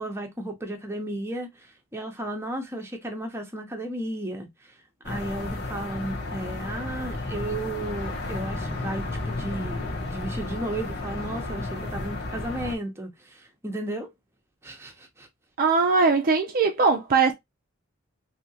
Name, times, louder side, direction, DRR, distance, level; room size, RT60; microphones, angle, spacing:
voice 1, 0.0-4.5 5.0-9.8 10.1-14.1 14.6-15.3, right 1 dB, 10° right, 0.8 m, -34 dB
sound 1, 5.0-12.7, left 2 dB, 55° left, 1.1 m, -33 dB
sound 2, 6.8-11.8, left 2 dB, 25° left, 0.8 m, -42 dB
voice 2, 15.6-17.3, right 4 dB, 45° right, 0.5 m, -20 dB
3.5 x 2.8 x 2.7 m
head